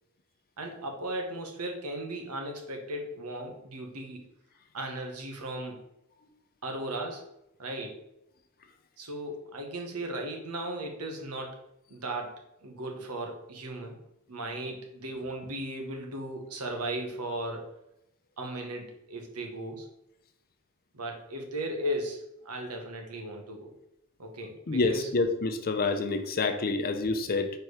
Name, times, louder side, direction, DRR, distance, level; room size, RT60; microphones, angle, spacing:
voice 1, 0.6-4.3 4.7-5.8 6.6-7.3 7.6-8.0 9.0-11.6 11.9-14.0 14.3-17.7 18.4-19.9 20.9-23.7 24.2-25.1, right 1 dB, 85° right, 3 dB, 1.3 m, -36 dB
voice 2, 24.7-27.5, left 3 dB, 40° left, 7 dB, 0.6 m, -27 dB
4.5 x 4.5 x 4.9 m, 0.84 s
head